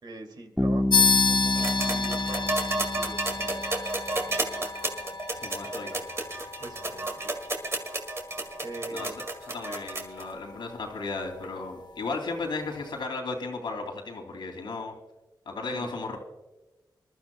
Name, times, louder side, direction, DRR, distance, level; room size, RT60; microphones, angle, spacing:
voice 1, 0.0-3.7 4.1-4.4 6.6-7.3 8.6-9.2 15.7-15.9, right 2 dB, 65° right, 4 dB, 2.4 m, -43 dB
Bass guitar, 0.6-4.3, left 1 dB, ahead, 1.2 m, -29 dB
sound 1, 0.9-10.9, left 4 dB, 65° left, 0.8 m, -31 dB
sound 2, 1.6-10.2 11.4-11.5, right 2 dB, 35° right, 2.0 m, -31 dB
voice 2, 5.3-6.0 8.9-9.1 9.5-14.9 15.5-16.2, left 3 dB, 85° left, 2 dB, 2.6 m, -35 dB
25.5 x 12.5 x 2.2 m, 1.1 s
wide cardioid pair, 80°, 8 cm